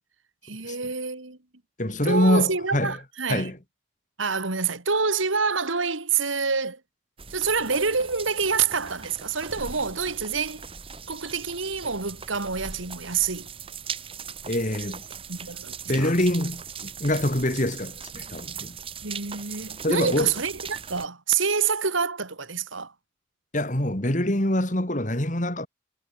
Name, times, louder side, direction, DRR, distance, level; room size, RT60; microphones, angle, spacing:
voice 1, 0.4-1.4 2.1-3.5 4.2-6.8 7.3-10.7 11.1-13.5 15.3-15.7 16.0-16.1 19.0-22.9, right 5 dB, 90° right, 2.7 m, -27 dB
voice 2, 1.8-3.0 3.3-3.6 14.5-15.0 15.9-18.8 19.8-20.3 23.5-25.7, left 1 dB, 40° left, 2.8 m, -25 dB
sound 1, 7.2-21.1, right 6 dB, 30° right, 1.6 m, -40 dB
head